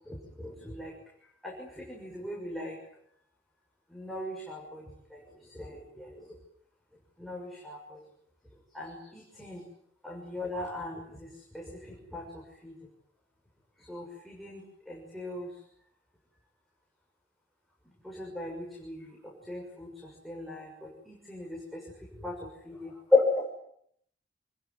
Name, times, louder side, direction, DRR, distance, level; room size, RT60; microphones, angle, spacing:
voice 1, 0.4-0.9 1.4-2.8 3.9-4.8 5.1-5.2 5.5-6.1 7.2-8.0 8.7-9.6 10.0-11.3 11.5-11.6 12.1-12.2 12.6-12.7 13.9-14.6 14.9-15.5 18.0-19.1 19.5-19.9 20.2-21.8 22.2-22.4 22.7-23.2, left 3 dB, ahead, -2 dB, 6.4 m, -35 dB
28.0 x 21.5 x 9.5 m, 0.70 s
head